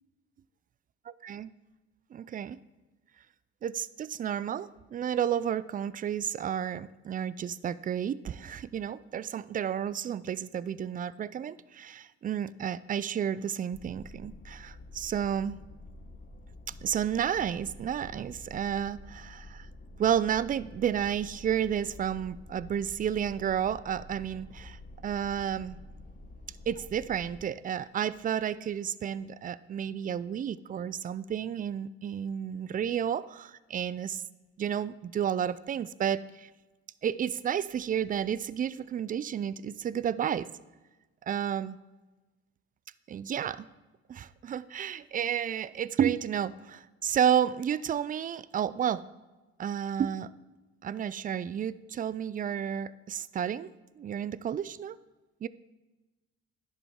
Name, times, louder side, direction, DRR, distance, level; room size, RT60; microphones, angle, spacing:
voice 1, 1.1-1.5 2.1-2.6 3.6-15.6 16.8-19.7 20.0-25.8 26.7-34.2 34.6-36.5 37.0-40.5 41.3-41.8 43.1-43.7 44.1-49.0 49.6-50.3 50.8-55.0 55.4-55.5, right 9 dB, 25° right, 18 dB, 0.3 m, -31 dB
sound 1, 13.7-27.4, left 2 dB, 30° left, 0.9 m, -49 dB
11.0 x 7.2 x 3.6 m, 1.2 s
hypercardioid pair, 65°, 34 cm